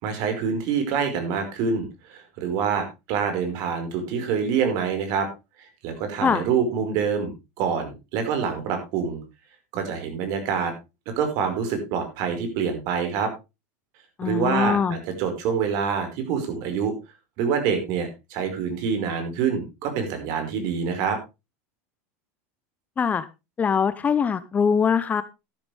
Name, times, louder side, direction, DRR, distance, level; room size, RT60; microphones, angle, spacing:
voice 1, 0.0-5.3 5.6-7.3 7.6-9.2 9.7-10.7 11.2-13.3 14.2-16.9 17.4-21.2, right 6 dB, 55° right, 6 dB, 5.0 m, -26 dB
voice 2, 14.2-15.0 23.0-23.3 23.6-25.2, left 6 dB, 20° left, 14 dB, 0.7 m, -22 dB
12.5 x 11.5 x 3.4 m, 0.26 s
supercardioid pair, 140°, 8 cm